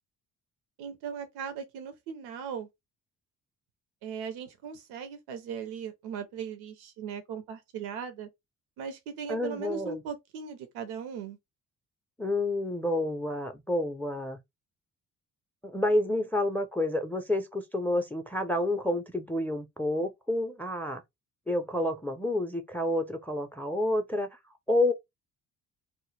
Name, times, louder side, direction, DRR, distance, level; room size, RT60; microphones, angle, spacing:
voice 1, 0.8-2.7 4.0-8.3 8.8-11.4, right 7 dB, 80° right, 0.6 m, -38 dB
voice 2, 9.3-10.0 12.2-14.4 15.6-21.0 21.5-24.4 24.7-24.9, left 1 dB, 5° left, 0.5 m, -29 dB
2.1 x 2.1 x 3.1 m
supercardioid pair, 50°, 38 cm